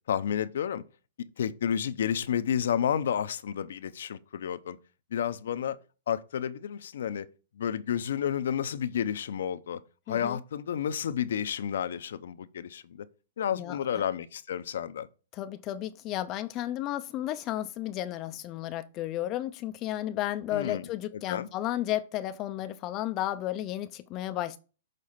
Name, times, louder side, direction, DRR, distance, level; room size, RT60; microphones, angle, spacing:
voice 1, 0.1-0.8 1.4-4.8 5.1-5.8 6.1-7.2 7.6-9.8 10.1-13.1 13.4-15.1 20.5-20.9 21.3-21.5, left 9 dB, 75° left, 0.6 m, -31 dB
voice 2, 10.1-10.4 13.6-14.0 15.3-24.6, left 13 dB, 30° left, 0.4 m, -33 dB
6.6 x 4.1 x 5.7 m
hypercardioid pair, 150°, 0 cm